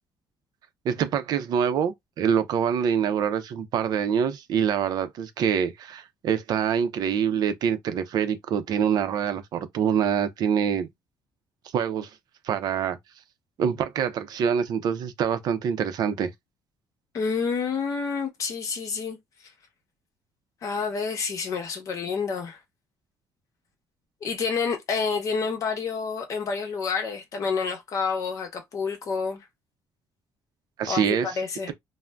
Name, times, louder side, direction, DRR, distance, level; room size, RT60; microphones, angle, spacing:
voice 1, 0.8-10.9 11.7-12.1 12.4-13.0 13.6-16.3 30.8-31.4, right 8 dB, 55° right, 0.5 m, -25 dB
voice 2, 17.1-19.2 20.6-22.6 24.2-29.4 30.9-31.7, left 5 dB, 40° left, 0.8 m, -28 dB
2.5 x 2.0 x 3.3 m
cardioid pair, 170°, 8 cm